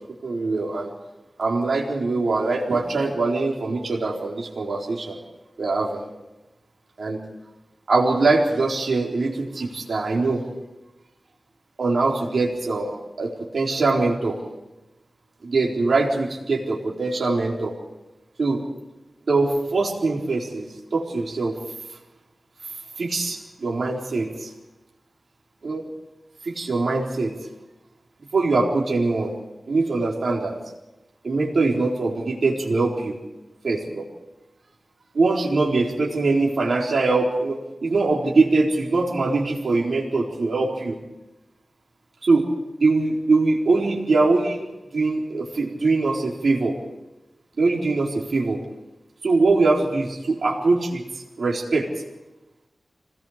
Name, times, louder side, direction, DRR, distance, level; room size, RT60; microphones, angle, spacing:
voice 1, 0.2-0.9 1.4-5.2 5.6-6.0 7.0-7.2 7.9-10.5 11.8-12.9 13.2-14.4 15.4-17.7 18.4-18.6 19.3-21.6 23.0-24.5 25.6-25.8 26.4-27.3 28.3-29.3 29.7-30.6 31.2-33.2 33.6-34.1 35.1-41.0 42.2-42.5 42.8-44.6 44.9-46.8 47.6-48.6 49.2-51.0 51.4-51.9, right 3 dB, 75° right, -1 dB, 4.2 m, -22 dB
26.5 x 19.0 x 5.1 m, 1.0 s
wide cardioid pair, 70°, 0 cm